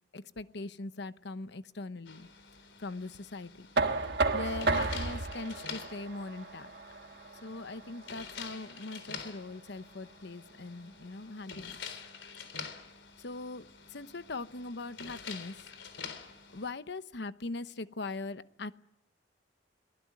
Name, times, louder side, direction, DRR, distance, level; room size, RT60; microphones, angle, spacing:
voice 1, 0.1-2.3 2.8-3.7 4.3-6.7 7.4-11.9 13.2-15.7 16.5-18.8, left 3 dB, 70° left, 13 dB, 1.0 m, -41 dB
sound 1, 2.1-16.7, left 6 dB, 85° left, 3.7 m, -47 dB
Knock, 3.8-9.6, right 3 dB, 65° right, 1.5 m, -33 dB
24.0 x 18.5 x 9.6 m, 0.84 s
head